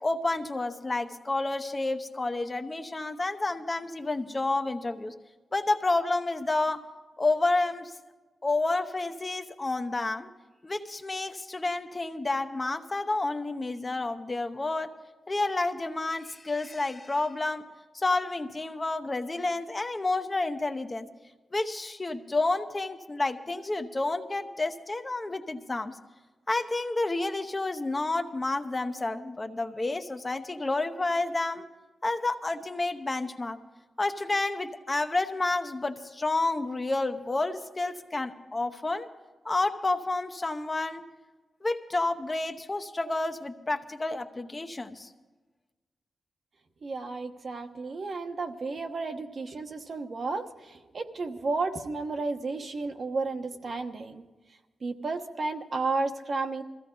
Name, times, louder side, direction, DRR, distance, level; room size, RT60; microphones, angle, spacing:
voice 1, 0.0-5.1 5.5-6.8 7.2-7.9 8.4-10.3 10.6-14.9 15.3-17.7 17.9-21.1 21.5-26.0 26.5-31.6 32.0-33.6 34.0-39.1 39.4-41.0 41.6-45.1, left 2 dB, 25° left, 6 dB, 0.9 m, -30 dB
voice 2, 46.8-54.2 54.8-56.6, right 3 dB, 50° right, 5 dB, 1.2 m, -32 dB
22.0 x 15.5 x 3.9 m, 1.2 s
wide cardioid pair, 130°, 0 cm